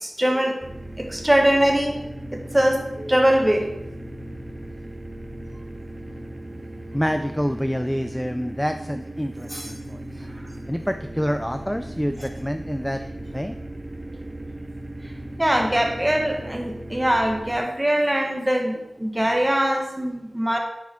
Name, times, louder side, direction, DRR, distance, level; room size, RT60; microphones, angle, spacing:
voice 1, 0.0-0.6 1.0-3.7 9.5-9.7 12.2-12.3 15.4-20.6, right 1 dB, 15° right, 2 dB, 1.3 m, -22 dB
sound 1, 0.6-17.6, right 1 dB, 30° right, 1.1 m, -37 dB
voice 2, 6.9-10.3 10.7-13.0 13.3-13.6, equal, 5° left, 7 dB, 0.3 m, -27 dB
9.4 x 4.8 x 4.3 m, 0.91 s
wide cardioid pair, 80°, 0 cm